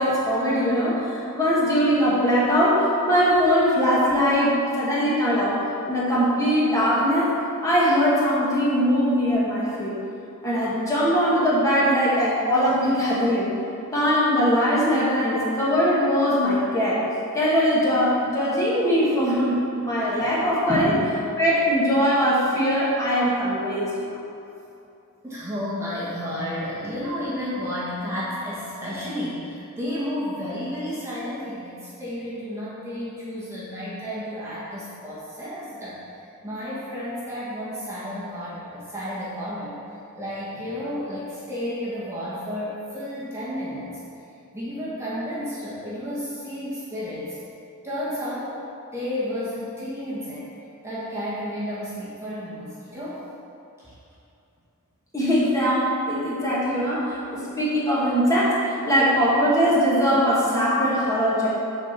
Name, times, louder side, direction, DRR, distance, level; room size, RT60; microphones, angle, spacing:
voice 1, 0.0-7.3 7.6-10.0 10.4-13.5 13.9-17.0 17.3-20.9 21.4-24.2 55.1-61.5, equal, 15° left, -7 dB, 1.5 m, -21 dB
voice 2, 20.7-21.1 25.2-39.8 40.1-43.9 44.5-47.4 47.8-48.6 48.9-50.5 50.8-53.3 53.8-53.9, equal, 10° right, -9 dB, 1.3 m, -32 dB
7.2 x 4.3 x 6.7 m, 2.7 s
head